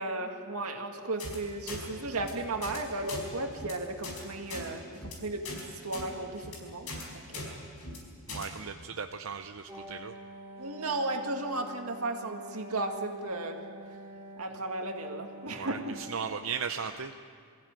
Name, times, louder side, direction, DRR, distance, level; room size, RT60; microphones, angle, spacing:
voice 1, 0.0-7.1 7.3-7.6 10.6-13.6 14.4-16.0, right 2 dB, 90° right, 4 dB, 2.1 m, -35 dB
sound 1, 1.2-1.4 1.7-1.8 2.1-2.3 2.6-2.8 3.1-3.2 3.5-3.7 4.0-4.2 4.5-4.6 5.0-5.1 5.4-5.6 5.9-6.1 6.4-6.6 6.9-7.0 7.3-7.5 7.8-8.0 8.3-8.5, left 2 dB, 85° left, 5.1 m, -40 dB
voice 2, 8.3-10.1 15.5-17.1, right 6 dB, 65° right, 7 dB, 0.6 m, -37 dB
Wind instrument woodwind instrument, 9.7-16.4, equal, 10° right, 2.5 m, -46 dB
22.5 x 15.5 x 9.0 m, 2.1 s
head